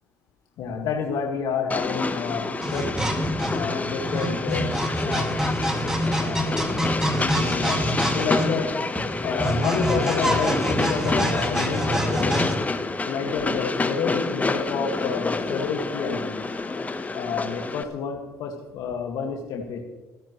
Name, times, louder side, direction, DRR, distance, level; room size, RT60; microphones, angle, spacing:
voice 1, 0.6-3.0 3.5-4.7 5.0-5.4 6.2-6.7 7.2-7.9 8.1-8.7 9.2-12.4 13.1-16.4 17.1-19.8, left 6 dB, 75° left, 1 dB, 2.0 m, -29 dB
Train, 1.7-17.8, left 3 dB, 25° left, 1.2 m, -28 dB
sound 1, 2.6-12.6, right 1 dB, 10° right, 2.5 m, -26 dB
28.0 x 10.5 x 3.2 m, 1.2 s
supercardioid pair, 70°, 7 cm